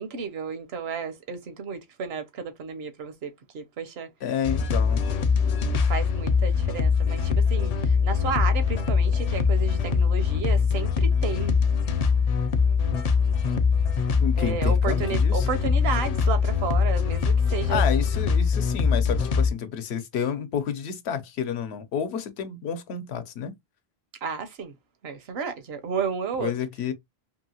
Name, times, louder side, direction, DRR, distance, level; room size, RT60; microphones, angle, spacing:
voice 1, 0.0-4.1 5.9-11.6 14.3-17.8 24.2-24.8 25.0-26.5, right 6 dB, 70° right, 0.9 m, -32 dB
voice 2, 4.2-5.0 14.2-15.5 17.7-23.5 26.4-26.9, left 7 dB, 80° left, 0.9 m, -30 dB
sound 1, 4.4-19.5, left 5 dB, 55° left, 0.4 m, -23 dB
2.8 x 2.7 x 2.7 m
omnidirectional pair, 1.1 m